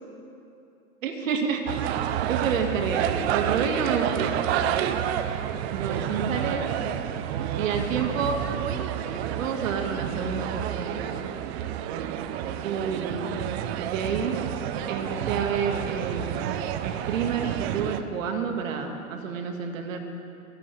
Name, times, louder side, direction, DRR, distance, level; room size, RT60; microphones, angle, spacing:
voice 1, 1.0-1.8 2.2-3.0 3.3-4.3 5.7-6.6 7.6-8.4 9.4-11.1 12.6-13.4 13.8-14.4 14.9-16.5 16.8-20.0, right 6 dB, 65° right, 4 dB, 2.2 m, -29 dB
sound 1, 1.7-18.0, right 10 dB, 45° right, 0.9 m, -29 dB
29.5 x 12.0 x 3.5 m, 2.7 s
hypercardioid pair, 115°, 43 cm